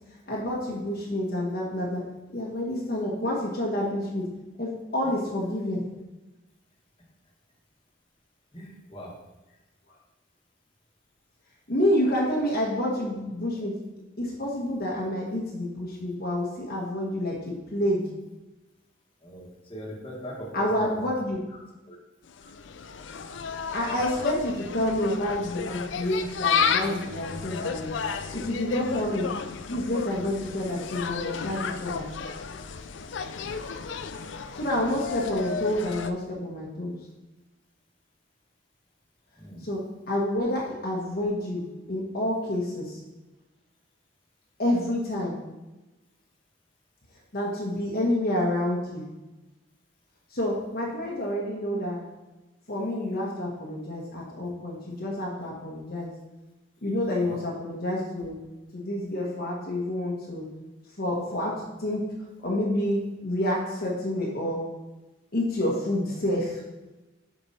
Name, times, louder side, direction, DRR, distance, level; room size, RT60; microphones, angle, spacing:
voice 1, 0.3-2.0 2.3-4.3 4.6-5.8 11.7-13.8 14.2-18.1 20.5-21.4 23.7-27.9 28.3-29.3 29.7-32.1 34.5-37.0 39.6-41.6 41.9-43.0 44.6-45.4 47.3-49.1 50.3-52.0 52.7-56.1 56.8-58.4 58.7-60.5 61.0-62.0 62.4-64.6 65.3-66.6, left 1 dB, 55° left, -4 dB, 1.3 m, -28 dB
voice 2, 8.5-9.1 19.2-21.1 21.9-22.0 33.4-33.6 39.4-39.6 57.2-57.3, equal, 30° left, -3 dB, 1.6 m, -40 dB
Insect, 22.3-36.1, left 6 dB, 75° left, 0.5 m, -32 dB
7.3 x 5.3 x 4.2 m, 1.1 s
head